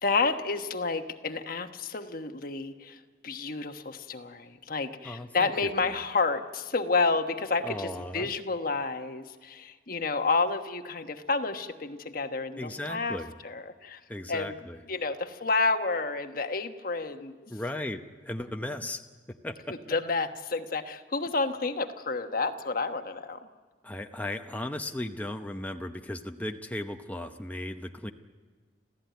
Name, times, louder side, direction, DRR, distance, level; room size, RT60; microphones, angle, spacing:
voice 1, 0.0-13.2 13.4-14.0 14.3-14.6 14.9-17.5 19.9-23.5, left 3 dB, 55° left, 7 dB, 1.2 m, -30 dB
voice 2, 5.0-5.5 7.6-8.3 12.6-13.3 14.1-14.8 17.5-19.0 19.3-19.6 23.8-28.1, left 1 dB, 10° left, 4 dB, 0.8 m, -36 dB
27.0 x 15.5 x 9.3 m, 1.5 s
head